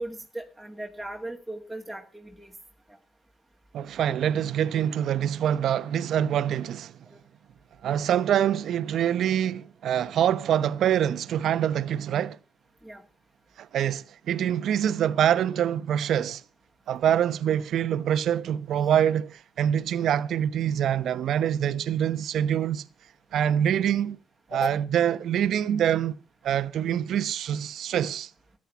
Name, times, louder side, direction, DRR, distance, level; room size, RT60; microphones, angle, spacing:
voice 1, 0.0-2.5 12.8-13.0 24.5-24.7, right 1 dB, ahead, 2.4 m, -36 dB
voice 2, 3.7-6.9 7.8-12.4 13.6-16.4 16.9-22.8 23.3-24.2 24.5-26.1 26.4-28.3, right 10 dB, 70° right, 0.9 m, -25 dB
14.0 x 9.9 x 6.9 m
cardioid pair, 90°, 0 cm